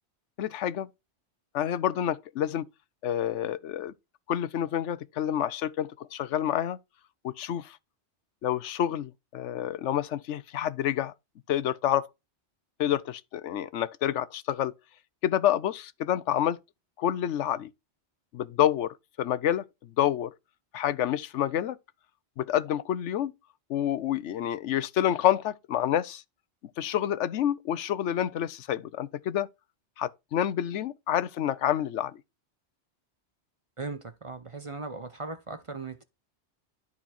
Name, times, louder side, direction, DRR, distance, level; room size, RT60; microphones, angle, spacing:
voice 1, 0.4-0.9 1.5-2.7 3.0-3.9 4.3-6.8 7.2-7.8 8.4-11.1 11.5-12.1 12.8-14.7 15.2-16.6 17.0-17.7 18.3-20.3 20.7-21.8 22.4-23.3 23.7-26.2 26.8-29.5 30.0-32.2, left 11 dB, 85° left, 1.0 m, -28 dB
voice 2, 33.8-36.0, right 3 dB, 30° right, 0.7 m, -38 dB
12.5 x 4.3 x 4.2 m
omnidirectional pair, 1.2 m